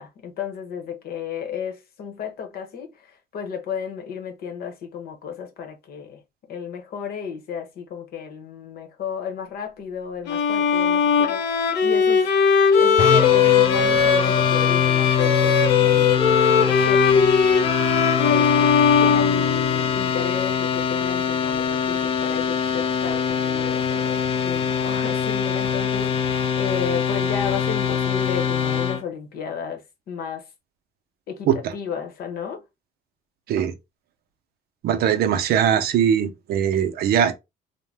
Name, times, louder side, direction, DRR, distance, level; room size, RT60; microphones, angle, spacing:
voice 1, 0.0-6.2 6.5-12.3 12.8-17.3 18.2-18.7 19.0-30.5 31.3-32.6, left 7 dB, 65° left, 0.9 m, -33 dB
Bowed string instrument, 10.3-20.0, left 6 dB, 90° left, 0.7 m, -19 dB
sound 1, 13.0-29.0, left 7 dB, 35° left, 0.4 m, -23 dB
voice 2, 34.8-37.3, right 9 dB, 65° right, 0.5 m, -20 dB
2.6 x 2.1 x 3.2 m
cardioid pair, 110°, 17 cm